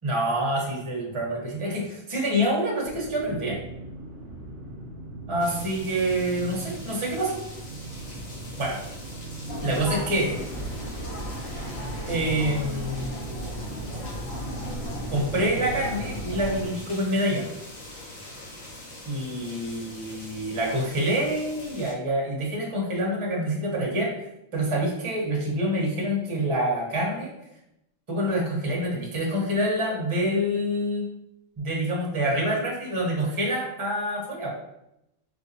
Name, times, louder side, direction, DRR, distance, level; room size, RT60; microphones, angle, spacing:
voice 1, 0.0-3.6 5.3-7.4 8.6-8.8 9.6-10.4 12.1-13.7 15.1-17.5 19.0-24.1 24.5-27.3 28.1-31.1 31.6-34.5, equal, 30° right, -3 dB, 0.8 m, -26 dB
sound 1, 2.8-16.6, right 2 dB, 55° right, 0.9 m, -40 dB
sound 2, 5.4-21.9, left 1 dB, 80° left, 1.3 m, -43 dB
sound 3, 9.5-16.7, equal, 55° left, 1.2 m, -35 dB
3.9 x 2.6 x 2.7 m, 0.85 s
omnidirectional pair, 1.4 m